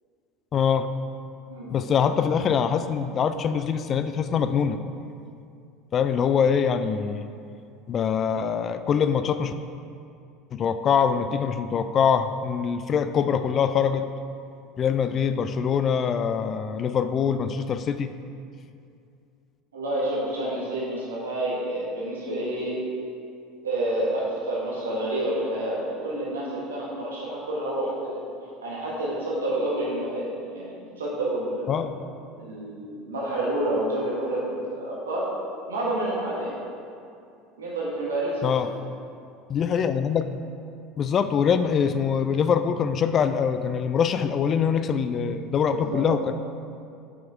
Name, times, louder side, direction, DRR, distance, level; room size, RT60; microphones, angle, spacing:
voice 1, 0.5-0.9 1.7-4.8 5.9-7.3 7.9-9.5 10.5-14.0 14.8-18.1 31.7-31.9 38.4-38.7 39.5-40.3 41.0-46.3, left 7 dB, 40° left, 10 dB, 0.4 m, -24 dB
voice 2, 19.7-22.8 23.6-28.1 28.6-31.8 32.4-35.3 35.7-36.6 37.6-38.7 45.7-46.1, right 1 dB, 80° right, -5 dB, 1.6 m, -29 dB
7.2 x 6.0 x 4.7 m, 2.5 s
figure-of-eight pair, 70°, 0 cm